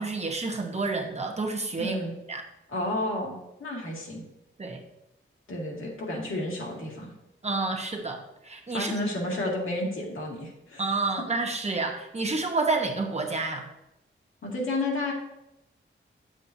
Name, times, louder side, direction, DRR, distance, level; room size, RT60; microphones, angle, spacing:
voice 1, 0.0-2.0 2.3-2.4 4.6-4.8 7.4-8.9 10.8-13.7, right 3 dB, 30° right, 2 dB, 1.1 m, -29 dB
voice 2, 1.8-2.1 2.7-4.2 5.5-7.1 8.7-10.9 14.4-15.1, left 1 dB, 80° left, -2 dB, 2.2 m, -31 dB
9.9 x 7.4 x 2.7 m, 0.88 s
wide cardioid pair, 135°, 21 cm